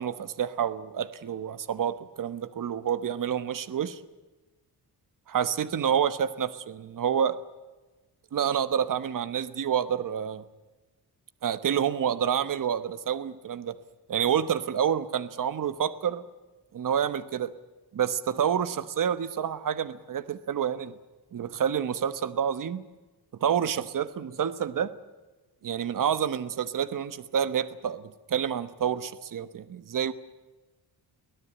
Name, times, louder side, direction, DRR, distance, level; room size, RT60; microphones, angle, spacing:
voice 1, 0.0-4.0 5.3-7.4 8.3-10.4 11.4-13.7 14.1-16.2 16.7-17.5 17.9-20.9 21.3-22.8 23.4-24.9 25.6-30.1, right 8 dB, 50° right, 13 dB, 1.2 m, -28 dB
24.5 x 17.5 x 8.7 m, 1.2 s
wide cardioid pair, 135°, 40 cm